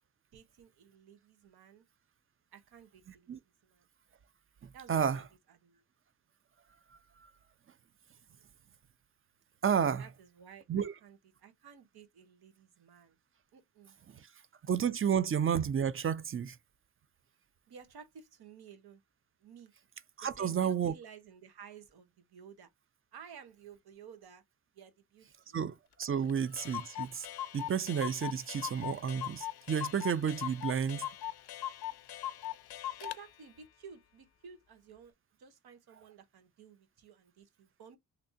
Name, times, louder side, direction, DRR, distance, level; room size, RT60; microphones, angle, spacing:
voice 1, 0.3-1.8 2.5-3.9 4.7-5.8 10.0-13.2 13.5-14.0 17.7-19.0 19.4-19.7 20.2-22.7 23.1-24.4 24.7-25.6 26.2-26.3 33.0-35.1 35.4-38.0, right 7 dB, 85° right, 1.0 m, -54 dB
voice 2, 4.9-5.2 9.6-10.0 10.7-10.9 14.7-16.6 20.2-20.9 25.5-27.3 27.5-31.1, right 7 dB, 35° right, 0.4 m, -31 dB
Clock, 26.0-26.1 26.3-26.4 26.6-33.2, left 12 dB, 85° left, 0.5 m, -40 dB
3.3 x 2.7 x 2.6 m
cardioid pair, 85°, 37 cm